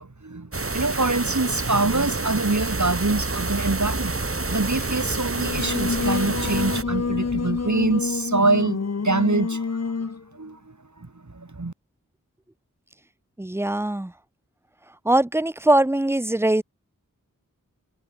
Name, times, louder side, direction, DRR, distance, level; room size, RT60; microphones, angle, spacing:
voice 1, 0.0-4.2 4.5-8.8 9.0-9.8 10.3-10.6 11.0-11.7, right 3 dB, 60° right, 3.8 m, -25 dB
sound 1, 0.5-6.8, right 3 dB, 40° right, 1.5 m, -28 dB
sound 2, 3.7-8.2, left 1 dB, 15° left, 2.4 m, -39 dB
Singing, 5.4-10.2, left 5 dB, 50° left, 0.9 m, -27 dB
voice 2, 13.4-14.1 15.0-16.6, right 1 dB, 10° right, 0.7 m, -21 dB
wide cardioid pair, 50°, 33 cm